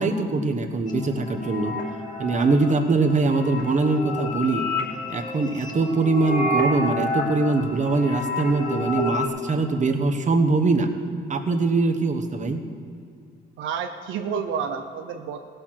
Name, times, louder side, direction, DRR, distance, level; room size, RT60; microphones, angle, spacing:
voice 1, 0.0-1.7 2.2-4.7 5.1-10.9 11.3-12.6, right 3 dB, 35° right, 6 dB, 1.2 m, -22 dB
sound 1, 0.9-9.3, left 1 dB, 40° left, 3.0 m, -29 dB
voice 2, 13.6-15.4, right 6 dB, 85° right, 6 dB, 0.7 m, -29 dB
17.0 x 6.7 x 6.0 m, 2.4 s
cardioid pair, 90°, 20 cm